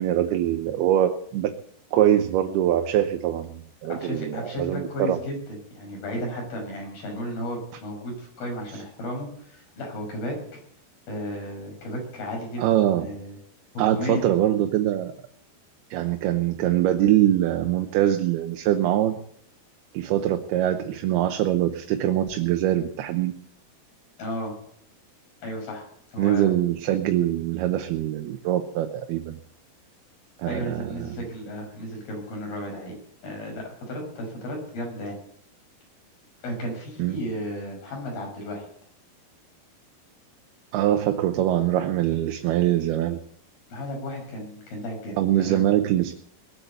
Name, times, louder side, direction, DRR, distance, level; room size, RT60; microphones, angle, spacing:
voice 1, 0.0-1.5 1.9-5.2 12.6-13.1 13.8-15.1 15.9-19.2 19.9-23.3 26.2-29.4 30.4-31.2 37.0-37.2 40.7-43.2 45.2-46.1, right 12 dB, 80° right, 6 dB, 2.9 m, -23 dB
voice 2, 3.9-5.4 5.8-10.6 11.1-12.6 13.0-13.3 13.7-14.2 24.2-24.5 25.4-25.9 26.1-26.5 30.5-33.0 33.2-35.2 36.4-38.7 43.7-45.7, equal, 65° left, 0 dB, 7.9 m, -33 dB
21.0 x 8.4 x 8.1 m, 0.66 s
omnidirectional pair, 4.6 m